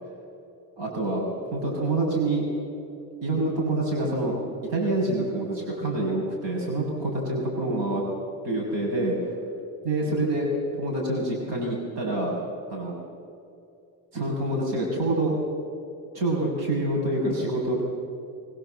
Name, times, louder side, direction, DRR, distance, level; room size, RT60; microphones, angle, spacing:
voice 1, 0.8-1.2 1.5-2.4 3.2-4.4 4.7-8.0 8.4-9.2 9.8-10.5 10.8-12.3 12.7-13.0 14.1-15.4 16.1-17.8, right 2 dB, 75° right, -2 dB, 6.7 m, -26 dB
23.5 x 22.0 x 7.9 m, 2.7 s
cardioid pair, 170°, 43 cm